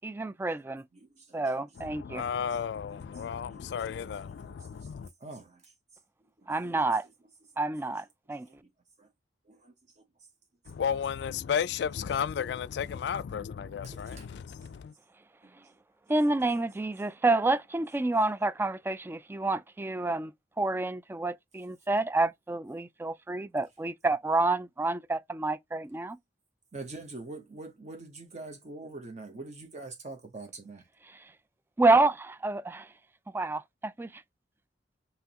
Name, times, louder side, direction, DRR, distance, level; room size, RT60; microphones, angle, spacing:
voice 1, 0.0-0.8 1.3-2.2 6.5-7.1 7.6-8.5 16.1-20.3 20.6-26.2 31.8-32.9 33.3-34.2, right 2 dB, 10° right, 0.3 m, -28 dB
voice 2, 0.9-1.6 2.5-2.6 3.1-3.2 3.5-3.7 4.0-5.7 6.4-6.8 8.5-8.6 9.0-9.1 9.4-10.0 13.6-14.7 15.4-15.8 26.7-30.9, right 2 dB, 40° right, 0.8 m, -46 dB
voice 3, 1.8-5.1 10.7-14.9, left 7 dB, 65° left, 0.3 m, -33 dB
5.7 x 2.9 x 2.8 m
head